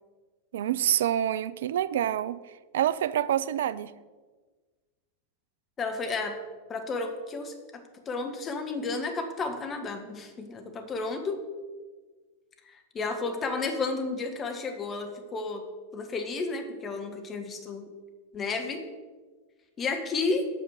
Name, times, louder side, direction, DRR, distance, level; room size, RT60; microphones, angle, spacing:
voice 1, 0.5-2.4 2.7-3.9, right 11 dB, 60° right, 0.3 m, -27 dB
voice 2, 5.8-6.4 6.7-11.4 12.6-15.6 15.9-17.8 18.3-18.8 19.8-20.5, left 3 dB, 25° left, 1.4 m, -32 dB
8.5 x 5.7 x 6.5 m
figure-of-eight pair, 90°, 0 cm